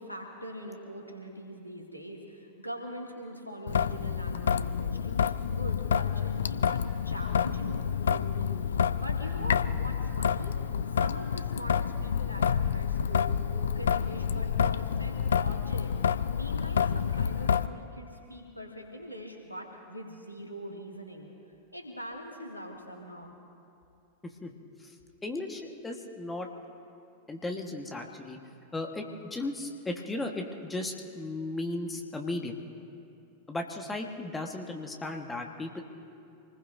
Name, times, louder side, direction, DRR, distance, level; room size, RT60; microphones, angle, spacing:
voice 1, 0.0-10.5 10.9-21.3 21.7-23.3, equal, 85° left, 1 dB, 2.1 m, -42 dB
Traffic noise roadway noise / Drip / Trickle dribble, 3.7-17.7, left 7 dB, 65° left, 0.4 m, -28 dB
voice 2, 25.2-26.5 27.3-28.4 28.7-32.6 33.5-35.8, left 2 dB, 10° left, 3 dB, 1.4 m, -36 dB
27.0 x 20.5 x 2.6 m, 2.6 s
figure-of-eight pair, 90°, 0 cm